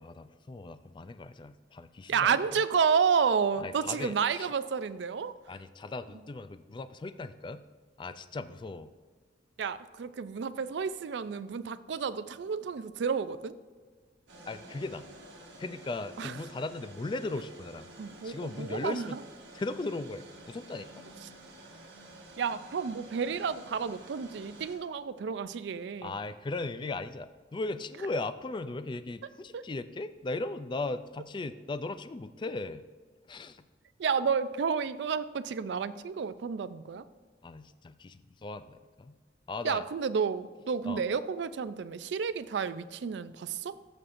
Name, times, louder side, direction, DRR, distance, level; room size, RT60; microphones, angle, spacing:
voice 1, 0.0-2.4 3.6-4.5 5.5-7.6 8.0-8.9 14.5-15.1 15.6-17.9 18.2-19.2 19.5-21.1 26.0-32.8 33.3-33.7 37.4-39.2 39.5-39.8 40.9-41.0, left 2 dB, 25° left, 12 dB, 0.3 m, -37 dB
voice 2, 2.1-5.3 9.6-13.5 16.2-16.4 18.0-19.2 22.4-26.1 29.5-29.6 34.0-37.0 39.6-43.8, right 6 dB, 65° right, 14 dB, 0.4 m, -31 dB
sound 1, 14.3-24.8, right 2 dB, 85° right, 1.7 m, -50 dB
14.0 x 6.5 x 2.6 m, 1.5 s
head